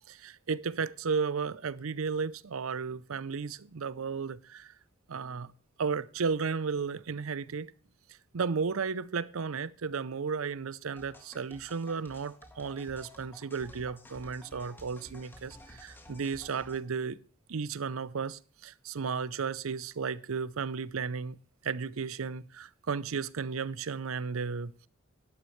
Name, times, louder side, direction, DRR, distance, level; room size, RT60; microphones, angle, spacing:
voice 1, 0.1-4.7 5.1-5.5 5.8-7.7 8.3-17.2 17.5-21.4 21.6-24.9, right 5 dB, 75° right, 0.6 m, -34 dB
sound 1, 11.0-16.8, left 1 dB, 10° left, 1.7 m, -53 dB
12.0 x 11.5 x 3.2 m
head